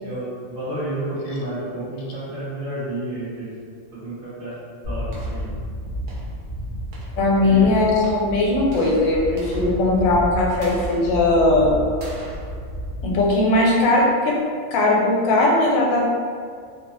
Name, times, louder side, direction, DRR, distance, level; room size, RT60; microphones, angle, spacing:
voice 1, 0.0-3.5 3.9-4.6 4.8-5.5 7.4-7.7, right 1 dB, 30° right, -14 dB, 0.9 m, -30 dB
sound 1, 4.8-14.0, equal, 55° right, 0.6 m, -31 dB
voice 2, 7.1-11.7 13.0-14.4 14.7-16.1, left 2 dB, 80° left, -3 dB, 1.0 m, -19 dB
2.6 x 2.0 x 2.9 m, 2.2 s
omnidirectional pair, 1.4 m